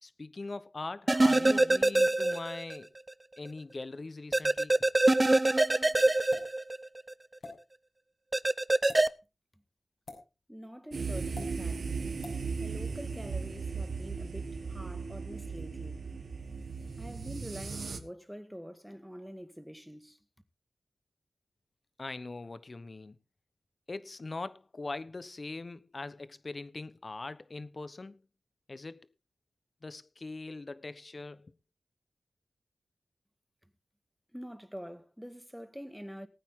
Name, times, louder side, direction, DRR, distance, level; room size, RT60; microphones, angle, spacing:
voice 1, 0.0-2.9 3.4-4.7 22.0-23.2 23.9-28.2 28.7-29.1 29.8-31.5, left 3 dB, 45° left, 1.1 m, -41 dB
sound 1, 1.1-2.8 3.1-3.2 4.3-7.1 8.3-9.1, right 2 dB, 30° right, 0.7 m, -24 dB
sound 2, 6.3-6.5 7.4-7.5 8.8-9.0 10.1-10.2 11.3-11.5 12.2-12.4, left 3 dB, 70° left, 5.7 m, -44 dB
voice 2, 10.5-12.1 12.6-16.1 17.0-20.2 34.3-36.3, equal, ahead, 1.8 m, -45 dB
sound 3, 10.9-18.0, right 4 dB, 75° right, 1.5 m, -37 dB
20.0 x 9.1 x 3.8 m
wide cardioid pair, 65°, 0 cm